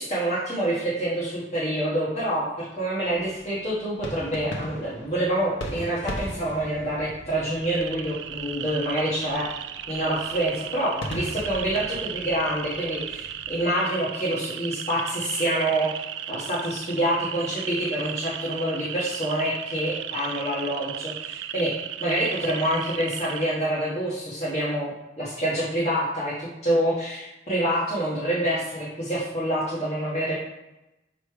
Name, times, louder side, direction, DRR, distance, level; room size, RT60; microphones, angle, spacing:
voice 1, 0.0-9.4 9.9-16.0 16.3-30.3, right 1 dB, 40° left, -8 dB, 1.3 m, -27 dB
sound 1, 3.0-13.7, equal, 90° left, 1.0 m, -39 dB
sound 2, 7.6-23.4, right 10 dB, 85° right, 0.3 m, -35 dB
6.4 x 3.1 x 4.8 m, 0.98 s
head